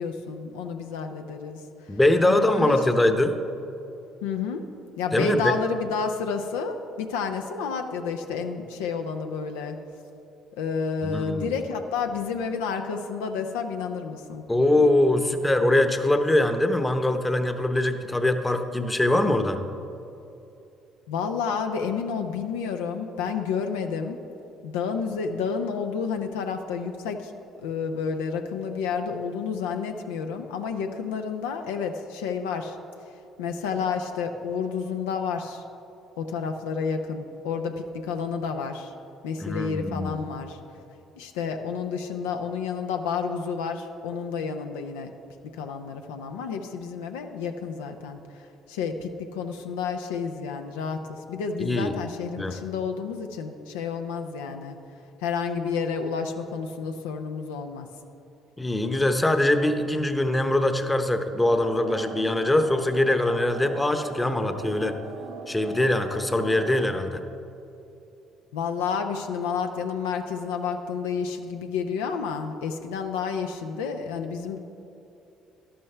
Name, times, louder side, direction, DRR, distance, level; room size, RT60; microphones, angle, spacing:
voice 1, 0.0-1.9 2.2-2.8 4.2-4.7 5.0-9.8 10.6-14.4 21.1-24.2 24.6-27.3 27.6-32.8 33.4-35.6 36.2-38.9 39.2-40.6 41.1-45.1 45.4-54.8 55.2-57.9 68.5-74.6, left 5 dB, 90° left, 5 dB, 0.6 m, -30 dB
voice 2, 1.9-3.4 5.1-5.6 11.0-11.5 14.5-19.6 39.4-40.2 51.6-51.9 52.4-52.6 58.6-64.9 65.5-67.2, left 1 dB, 15° left, 8 dB, 0.8 m, -23 dB
sound 1, 61.4-67.0, right 3 dB, 70° right, 0.8 m, -40 dB
12.0 x 11.0 x 3.3 m, 2.8 s
supercardioid pair, 65°, 0 cm